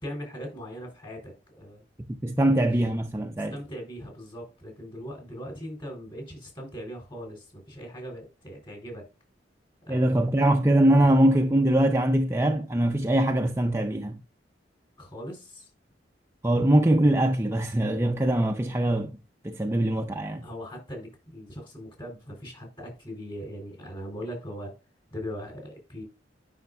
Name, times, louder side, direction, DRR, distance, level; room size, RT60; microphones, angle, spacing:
voice 1, 0.0-1.8 2.5-2.6 3.5-9.0 9.9-10.4 11.0-11.1 15.0-15.7 20.4-24.7 25.1-26.0, equal, 25° left, 3.4 m, -40 dB
voice 2, 2.1-3.6 9.9-14.2 16.4-19.2 19.4-20.5, right 1 dB, 15° right, 0.4 m, -22 dB
9.2 x 5.8 x 2.3 m
head